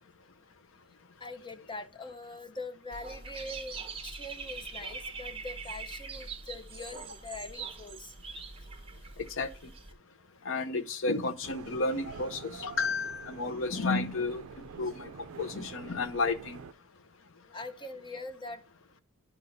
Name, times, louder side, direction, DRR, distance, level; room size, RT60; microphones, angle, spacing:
voice 1, 1.2-8.2 8.6-8.7 17.5-18.6, left 2 dB, 20° left, 0.7 m, -43 dB
Dog / Bird, 2.9-9.9, right 5 dB, 25° right, 1.0 m, -43 dB
voice 2, 9.4-9.7 10.4-14.4 14.8-15.1 15.4-16.6, left 3 dB, 65° left, 0.7 m, -32 dB
sound 1, 11.4-16.7, right 6 dB, 70° right, 0.4 m, -46 dB
11.0 x 5.8 x 2.6 m
head